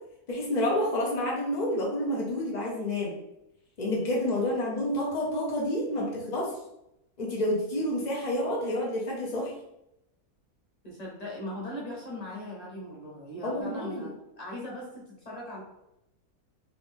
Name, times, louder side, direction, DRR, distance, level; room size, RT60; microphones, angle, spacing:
voice 1, 0.3-3.2 3.8-6.5 7.2-9.5 13.4-14.1, left 1 dB, 65° left, -3 dB, 0.4 m, -29 dB
voice 2, 6.0-6.3 10.8-15.6, left 1 dB, 30° left, -4 dB, 1.1 m, -39 dB
3.4 x 2.5 x 3.5 m, 0.85 s
omnidirectional pair, 1.6 m